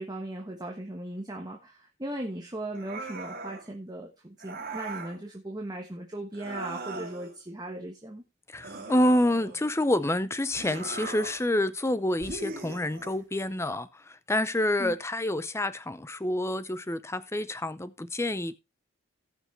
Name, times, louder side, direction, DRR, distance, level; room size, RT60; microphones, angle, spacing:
voice 1, 0.0-8.2 14.8-15.0, right 1 dB, 20° right, 1.2 m, -38 dB
sound 1, 2.7-3.7 4.4-5.2 6.3-7.4 8.6-9.8 10.5-11.5 12.2-13.2, right 3 dB, 45° right, 2.7 m, -39 dB
voice 2, 8.5-18.6, left 1 dB, 10° left, 0.6 m, -28 dB
18.0 x 6.1 x 3.2 m
head